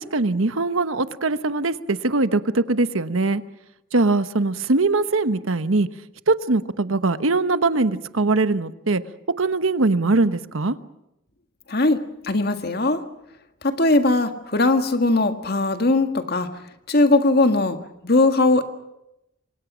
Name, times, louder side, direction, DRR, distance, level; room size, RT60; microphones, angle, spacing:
voice 1, 0.0-3.4 3.9-5.9 6.3-9.0 9.4-10.8, right 3 dB, 85° right, 12 dB, 1.1 m, -21 dB
voice 2, 12.2-13.0 13.6-16.5 16.9-17.8 18.0-18.6, left 2 dB, 50° left, 7 dB, 1.9 m, -19 dB
27.5 x 25.0 x 6.3 m, 0.87 s
head